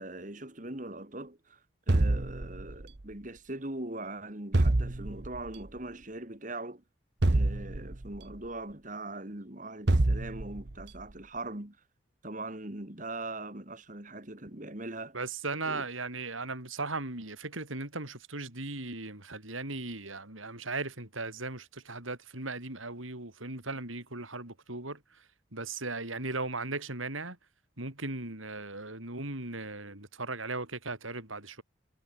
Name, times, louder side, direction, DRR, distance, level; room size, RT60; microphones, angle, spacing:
voice 1, 0.0-6.8 7.3-11.8 12.2-15.2 15.7-15.8, right 2 dB, 40° right, 2.3 m, -41 dB
sound 1, 1.9-3.0 4.5-5.5 7.2-8.3 9.9-10.8, right 2 dB, 55° right, 1.1 m, -27 dB
voice 2, 15.1-27.4 27.8-31.6, right 3 dB, 90° right, 6.4 m, -37 dB
head